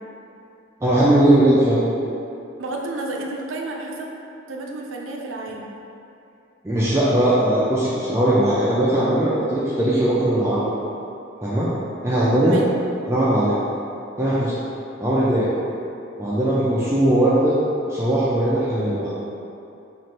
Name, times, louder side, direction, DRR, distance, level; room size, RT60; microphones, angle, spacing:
voice 1, 0.8-1.8 6.6-10.6 11.4-11.7 12.0-12.6 13.1-13.6 14.2-14.5 15.0-15.5 16.2-17.6 17.9-19.2, right 1 dB, 15° right, -8 dB, 0.4 m, -19 dB
voice 2, 2.6-4.1 4.5-5.7 12.4-12.7, right 2 dB, 80° right, 0 dB, 0.5 m, -31 dB
3.1 x 2.5 x 4.2 m, 2.7 s
head